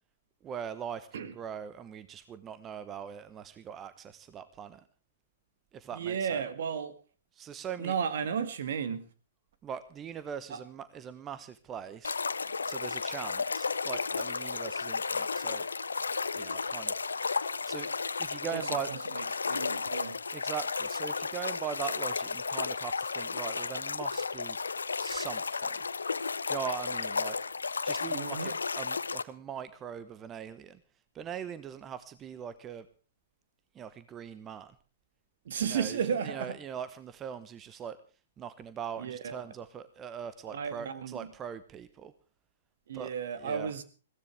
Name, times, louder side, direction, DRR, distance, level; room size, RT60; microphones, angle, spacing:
voice 1, 0.4-4.8 5.7-6.4 7.3-8.0 9.6-12.1 12.6-15.6 16.3-17.9 18.2-18.9 20.3-24.6 25.0-25.8 26.5-27.4 27.8-30.8 31.1-32.9 33.7-34.7 35.6-38.0 38.4-42.1 42.9-43.1 43.4-43.7, right 8 dB, 20° right, 1.0 m, -41 dB
voice 2, 5.9-6.9 7.8-9.1 10.5-10.6 18.5-20.2 28.1-28.5 35.5-36.6 39.0-39.4 40.4-41.3 42.9-43.8, right 7 dB, 60° right, 1.8 m, -34 dB
sound 1, 12.0-29.2, left 4 dB, 75° left, 0.8 m, -33 dB
22.0 x 16.0 x 3.4 m
figure-of-eight pair, 115°, 0 cm